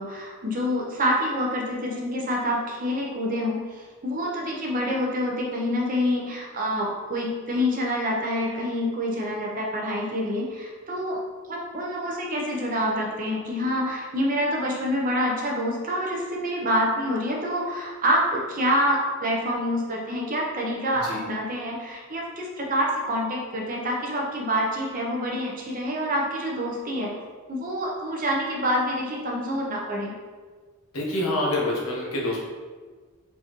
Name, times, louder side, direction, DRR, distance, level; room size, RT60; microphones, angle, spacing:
voice 1, 0.0-11.2 11.5-27.1 27.5-30.1, equal, 40° right, -2 dB, 0.7 m, -27 dB
voice 2, 30.9-32.4, left 1 dB, 75° left, -3 dB, 1.1 m, -26 dB
4.5 x 2.7 x 3.0 m, 1.5 s
head